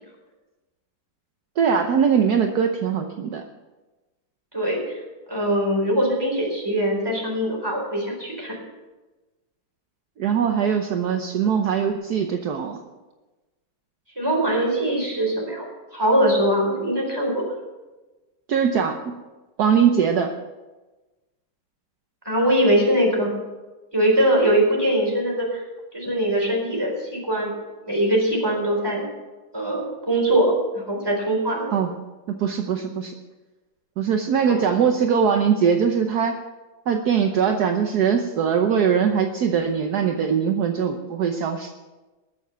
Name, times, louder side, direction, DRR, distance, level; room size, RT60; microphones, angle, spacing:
voice 1, 1.6-3.4 10.2-12.8 18.5-19.1 19.6-20.3 31.7-31.9 32.3-33.1 34.0-36.4 36.9-41.7, right 7 dB, 65° right, 5 dB, 1.4 m, -21 dB
voice 2, 4.5-5.0 5.3-8.6 14.2-17.4 22.2-23.3 23.9-25.6 25.9-27.5 27.8-29.1 29.5-31.7 34.4-34.5, right 1 dB, 10° right, -2 dB, 4.3 m, -22 dB
20.0 x 7.1 x 6.9 m, 1.2 s
omnidirectional pair, 2.0 m